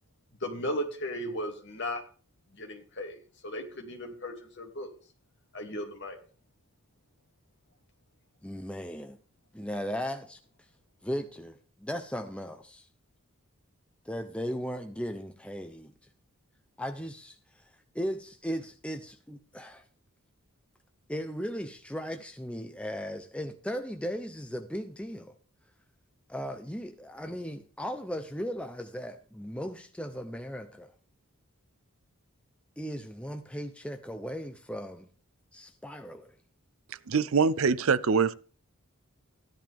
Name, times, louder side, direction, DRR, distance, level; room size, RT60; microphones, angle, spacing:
voice 1, 0.4-2.0 2.5-4.9 5.5-6.2, equal, 50° left, 2.7 m, -36 dB
voice 2, 8.4-9.2 9.5-10.4 11.0-12.9 14.0-15.9 16.8-17.7 17.9-19.8 21.1-25.3 26.3-30.9 32.8-35.1 35.5-36.3, equal, 5° left, 0.7 m, -37 dB
voice 3, 37.1-38.3, right 5 dB, 65° right, 0.6 m, -24 dB
14.5 x 10.5 x 3.6 m
head